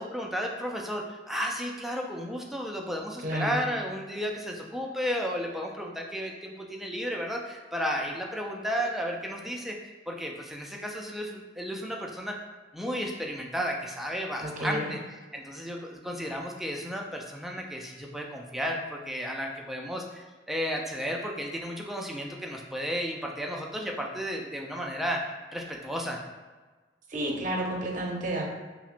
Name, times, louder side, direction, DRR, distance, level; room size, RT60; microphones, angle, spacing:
voice 1, 0.0-12.4 12.7-15.0 15.3-25.2 25.5-26.2, equal, ahead, 0 dB, 0.3 m, -33 dB
voice 2, 3.2-3.6 14.4-14.9 27.1-28.5, right 1 dB, 45° right, 0 dB, 0.6 m, -31 dB
5.6 x 2.1 x 2.5 m, 1.3 s
head